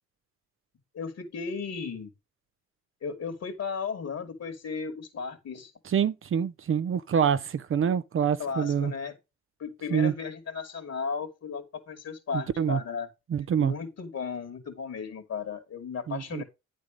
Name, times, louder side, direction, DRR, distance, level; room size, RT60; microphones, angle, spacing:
voice 1, 0.9-2.1 3.0-5.7 8.4-9.1 9.6-13.1 13.6-16.4, left 5 dB, 55° left, 2.6 m, -35 dB
voice 2, 5.9-8.9 9.9-10.1 12.3-12.8 13.3-13.7 16.1-16.4, right 8 dB, 45° right, 0.6 m, -26 dB
9.6 x 4.1 x 5.2 m
cardioid pair, 90°, 30 cm